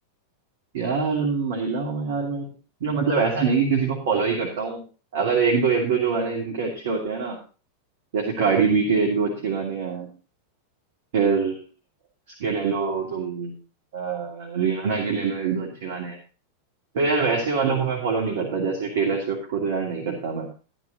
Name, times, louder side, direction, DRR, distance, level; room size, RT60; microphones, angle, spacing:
voice 1, 0.7-2.5 2.8-4.8 5.1-7.4 8.1-10.1 11.1-11.6 12.4-13.6 13.9-16.2 16.9-20.5, right 5 dB, 55° right, -1 dB, 2.8 m, -24 dB
14.0 x 11.5 x 3.0 m, 0.35 s
figure-of-eight pair, 90°, 0 cm